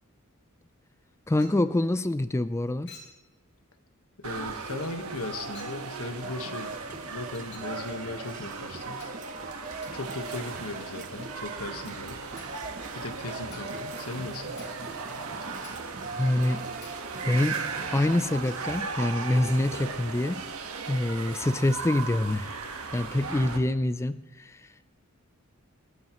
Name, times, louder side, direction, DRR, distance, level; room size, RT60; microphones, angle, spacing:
voice 1, 1.3-2.9 16.2-16.6 17.2-17.6 17.9-20.4 20.9-22.5 22.9-24.7, left 1 dB, 15° left, 12 dB, 0.4 m, -26 dB
Chink clink, 1.4-1.7 2.9-3.2 4.2-4.4 5.5-5.8 7.3-7.8 9.0-9.2 9.8-10.0 10.8-11.0 11.2-11.4 11.9-12.1 12.4-12.6 13.1-13.2 13.5-13.8 14.1-14.3 14.6-14.9 15.2-15.3 15.6-15.9 16.4-16.5 16.8-17.1, left 4 dB, 50° left, 3.0 m, -51 dB
voice 2, 4.2-9.1 9.9-12.2 12.9-14.5, left 2 dB, 85° left, 7 dB, 1.4 m, -37 dB
sound 1, 4.2-23.6, right 4 dB, 80° right, 1.4 m, -37 dB
sound 2, 6.2-18.8, right 3 dB, 40° right, 0.9 m, -43 dB
27.5 x 9.6 x 3.1 m, 1.1 s
head